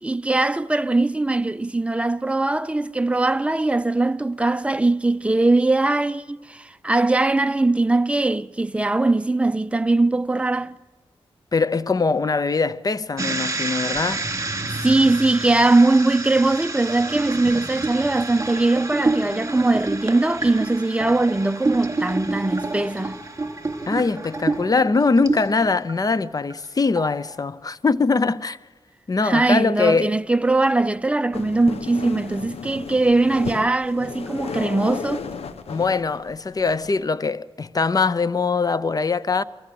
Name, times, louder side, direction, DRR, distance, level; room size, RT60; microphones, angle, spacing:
voice 1, 0.0-10.8 14.7-23.2 29.2-35.3, right 2 dB, 10° right, 0.6 m, -21 dB
voice 2, 11.5-14.2 23.9-28.6 29.1-30.1 35.7-39.4, left 4 dB, 35° left, 0.7 m, -22 dB
sound 1, 13.2-25.9 26.3-26.7 27.0-27.3, right 3 dB, 30° right, 3.1 m, -28 dB
sound 2, 31.3-37.0, left 5 dB, 80° left, 1.0 m, -34 dB
23.5 x 15.0 x 7.6 m
cardioid pair, 60°, 10 cm